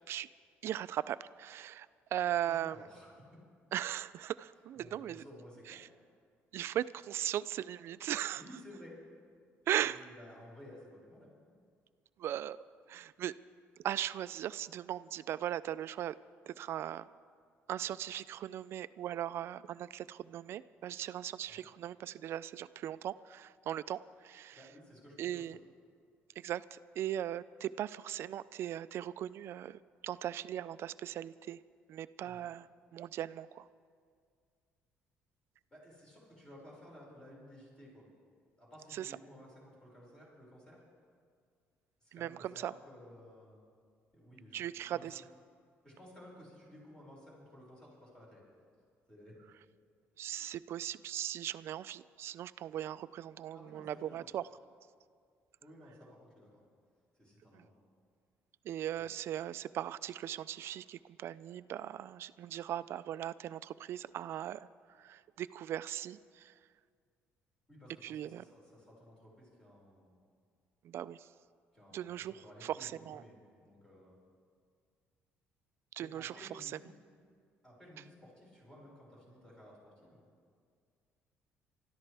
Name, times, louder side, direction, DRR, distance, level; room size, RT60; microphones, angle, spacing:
voice 1, 0.6-2.8 3.7-5.2 5.7-5.9 6.5-8.4 9.7-10.0 12.2-13.3 13.8-16.2 16.5-17.1 17.7-24.6 25.2-25.6 26.4-31.6 31.9-33.7 38.9-39.2 42.1-42.7 44.5-45.2 50.2-54.4 57.5-57.6 58.6-64.7 64.9-66.6 68.0-68.4 70.8-71.3 71.9-73.2 75.9-76.8, right 11 dB, 60° right, 16 dB, 0.3 m, -39 dB
voice 2, 2.5-3.1 4.8-5.8 8.4-9.0 9.8-11.3 21.5-21.6 24.5-25.5 32.2-32.4 35.7-38.1 38.6-40.8 42.0-43.6 44.1-44.6 44.9-45.1 45.8-48.4 49.1-49.4 53.5-54.2 55.6-56.6 57.1-57.8 59.0-59.1 67.7-70.2 71.7-73.3 73.6-74.2 76.0-77.0 77.6-80.2, equal, 15° left, -4 dB, 5.3 m, -55 dB
25.0 x 13.5 x 3.4 m, 2.1 s
cardioid pair, 120°, 5 cm